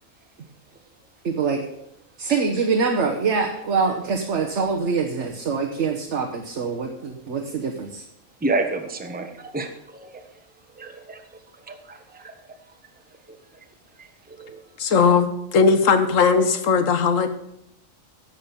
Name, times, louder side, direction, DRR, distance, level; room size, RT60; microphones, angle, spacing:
voice 1, 1.2-1.6 2.2-8.0, right 5 dB, 60° right, 3 dB, 1.3 m, -24 dB
voice 2, 8.4-10.2 10.7-11.2 11.7-12.3 13.3-13.4 14.0-14.6, right 2 dB, 10° right, 5 dB, 0.9 m, -30 dB
voice 3, 14.8-17.3, left 5 dB, 70° left, 9 dB, 1.4 m, -18 dB
10.5 x 7.4 x 6.8 m, 0.77 s
omnidirectional pair, 1.4 m